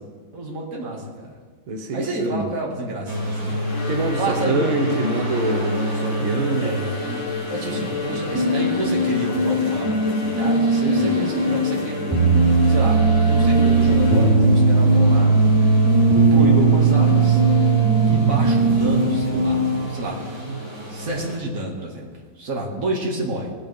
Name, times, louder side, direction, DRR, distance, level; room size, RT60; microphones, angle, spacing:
voice 1, 0.0-1.4 1.9-3.6 4.2-5.1 6.6-12.3 12.7-15.4 16.2-17.4 18.1-20.3 20.9-23.5, right 1 dB, 40° right, -2 dB, 2.3 m, -29 dB
voice 2, 1.7-2.5 3.9-6.8 7.7-7.9 10.9-11.2 16.2-16.3 20.4-20.6, right 3 dB, 90° right, 4 dB, 1.9 m, -26 dB
sound 1, 3.1-21.4, right 1 dB, 70° right, 5.4 m, -31 dB
Bowed string instrument, 3.6-14.7, left 4 dB, 75° left, 2.3 m, -32 dB
sound 2, 8.3-20.0, right 3 dB, 10° right, 3.7 m, -18 dB
18.0 x 9.7 x 3.5 m, 1.5 s
omnidirectional pair, 2.2 m